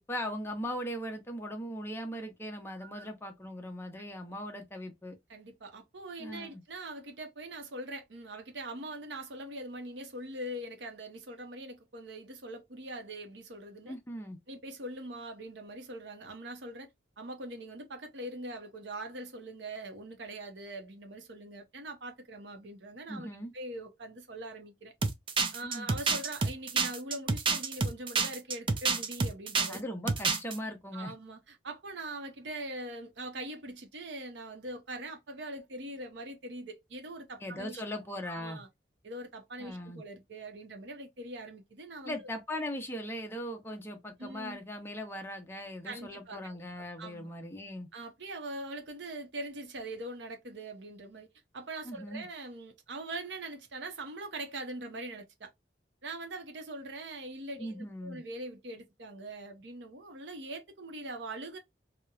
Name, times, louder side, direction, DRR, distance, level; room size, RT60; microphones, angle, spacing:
voice 1, 0.0-5.2 6.2-6.6 13.9-14.4 23.1-23.5 25.6-25.9 29.7-31.1 37.4-38.6 39.6-40.0 42.0-47.9 51.8-52.3 57.6-58.2, equal, 15° left, 0.6 m, -39 dB
voice 2, 2.8-3.1 5.3-13.9 14.5-16.9 17.2-23.3 23.5-24.9 25.5-29.8 30.9-37.8 38.2-38.7 39.0-42.3 44.2-44.6 45.8-46.6 47.0-47.3 47.9-51.3 51.5-55.5 56.0-61.6, right 1 dB, 80° right, 0.7 m, -42 dB
sound 1, 25.0-29.8 30.1-30.6, right 4 dB, 30° right, 0.4 m, -28 dB
2.9 x 2.1 x 2.3 m
head